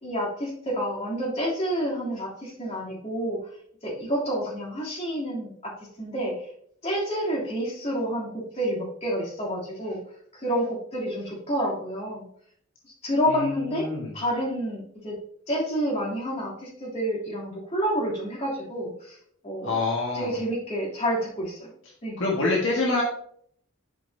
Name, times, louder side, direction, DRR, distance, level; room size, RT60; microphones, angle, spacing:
voice 1, 0.0-3.4 3.8-6.3 6.8-10.0 10.3-12.3 12.8-13.9 14.1-15.1 15.5-19.2 19.4-19.7 20.1-21.7 22.0-22.2, equal, 30° left, -6 dB, 3.1 m, -29 dB
voice 2, 13.3-14.1 19.6-20.3 22.2-23.0, left 3 dB, 65° left, -4 dB, 1.7 m, -26 dB
11.5 x 5.4 x 2.8 m, 0.64 s
head